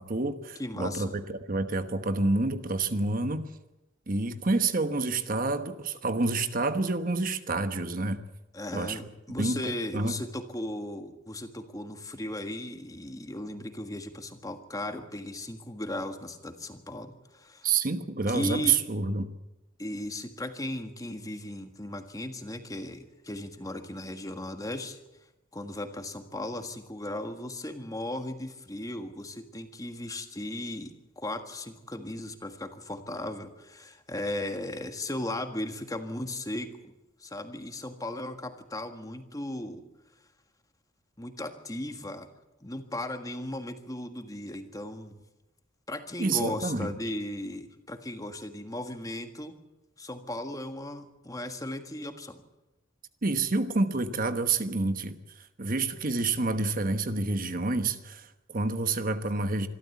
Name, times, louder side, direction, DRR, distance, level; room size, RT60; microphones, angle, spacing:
voice 1, 0.1-3.5 4.1-8.2 8.7-9.0 9.4-10.2 17.6-19.3 46.2-46.9 53.2-59.7, right 3 dB, 45° right, 9 dB, 1.2 m, -28 dB
voice 2, 0.6-1.1 8.5-17.7 18.3-18.8 19.8-25.0 25.5-36.9 37.2-39.8 41.2-42.3 42.6-45.2 45.9-49.5 50.0-52.4, left 1 dB, 20° left, 7 dB, 1.6 m, -36 dB
25.5 x 13.5 x 8.3 m, 0.99 s
head